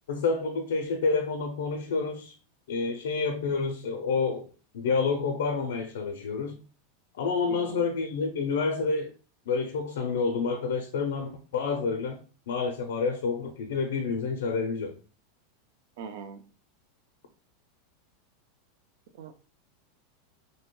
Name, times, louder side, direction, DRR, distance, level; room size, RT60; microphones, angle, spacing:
voice 1, 0.1-2.3 2.7-4.5 4.7-6.6 7.1-9.1 9.5-12.2 12.5-15.0, left 4 dB, 85° left, 0.4 m, -28 dB
voice 2, 7.5-7.8 16.0-16.4 19.2-19.3, right 6 dB, 60° right, 0.4 m, -41 dB
2.7 x 2.1 x 2.9 m
supercardioid pair, 170°, 0 cm